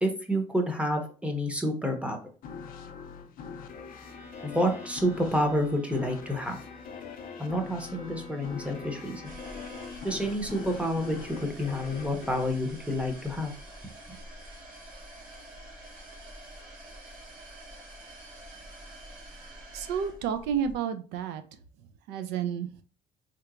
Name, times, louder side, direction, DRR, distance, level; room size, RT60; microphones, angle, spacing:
voice 1, 0.0-2.2 4.4-6.6 7.4-9.3 10.0-13.5, equal, 5° right, 4 dB, 0.7 m, -29 dB
sound 1, 2.4-13.6, left 6 dB, 55° left, 0.5 m, -43 dB
Bowed string instrument, 3.9-10.2, left 3 dB, 30° right, 1.0 m, -49 dB
sound 2, 9.2-20.8, right 1 dB, 55° right, 1.1 m, -47 dB
voice 2, 19.7-21.4 22.1-22.7, right 8 dB, 85° right, 9 dB, 0.4 m, -30 dB
3.3 x 2.9 x 2.4 m, 0.39 s
cardioid pair, 110°, 17 cm